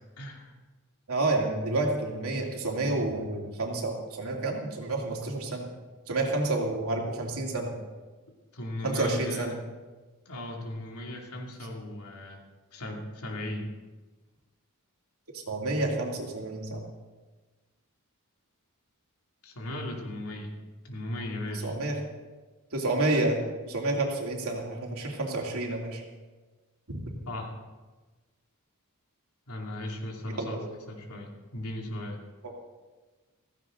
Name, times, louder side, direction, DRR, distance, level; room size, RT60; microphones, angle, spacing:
voice 1, 0.2-0.5 8.5-9.6 10.2-12.4 12.7-13.7 19.4-20.5 20.8-21.7 27.3-27.6 29.5-30.6 30.9-32.2, left 1 dB, 80° left, 0 dB, 2.8 m, -37 dB
voice 2, 1.1-5.7 6.1-7.8 8.8-9.5 15.5-16.8 21.6-21.9 22.7-23.4 23.6-26.0 26.9-27.2 30.4-30.7, right 2 dB, 75° right, 0 dB, 2.8 m, -29 dB
16.0 x 15.0 x 3.9 m, 1.3 s
head